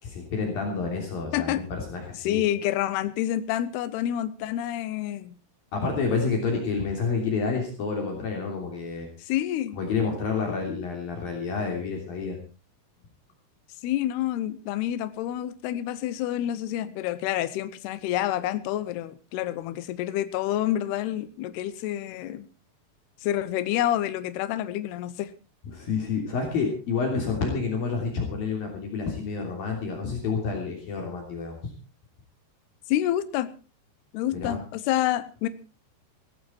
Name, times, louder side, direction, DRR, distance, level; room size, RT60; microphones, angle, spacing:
voice 1, 0.0-2.4 5.7-9.1 9.8-12.4 25.7-31.6 34.3-34.6, left 4 dB, 55° left, 1 dB, 4.8 m, -29 dB
voice 2, 2.2-5.4 9.2-9.8 13.8-22.5 23.2-25.3 32.9-33.5 34.1-35.5, left 12 dB, 75° left, 13 dB, 2.9 m, -28 dB
17.5 x 14.5 x 4.5 m, 0.34 s
omnidirectional pair, 5.0 m